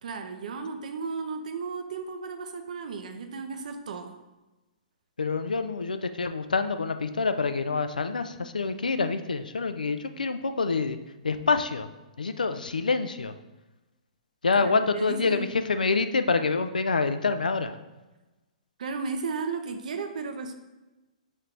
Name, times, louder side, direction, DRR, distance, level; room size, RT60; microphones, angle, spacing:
voice 1, 0.0-4.2 14.6-15.5 18.8-20.5, right 4 dB, 65° right, 7 dB, 0.5 m, -34 dB
voice 2, 5.2-11.0 11.2-11.9 12.2-13.3 14.4-17.7, left 4 dB, 85° left, 9 dB, 0.3 m, -26 dB
3.1 x 3.1 x 3.8 m, 1.1 s
hypercardioid pair, 120°, 4 cm